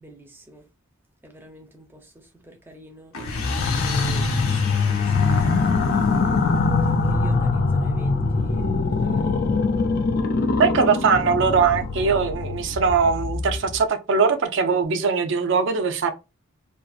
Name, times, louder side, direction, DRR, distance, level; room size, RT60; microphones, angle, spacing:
voice 1, 0.0-0.7 1.2-6.2 6.9-9.4, right 1 dB, 10° right, 0.5 m, -46 dB
sound 1, 3.1-6.9, left 4 dB, 80° left, 0.6 m, -34 dB
sound 2, 3.3-13.8, left 3 dB, 45° left, 0.3 m, -23 dB
voice 2, 10.6-16.1, right 5 dB, 60° right, 0.4 m, -21 dB
2.6 x 2.4 x 2.3 m
head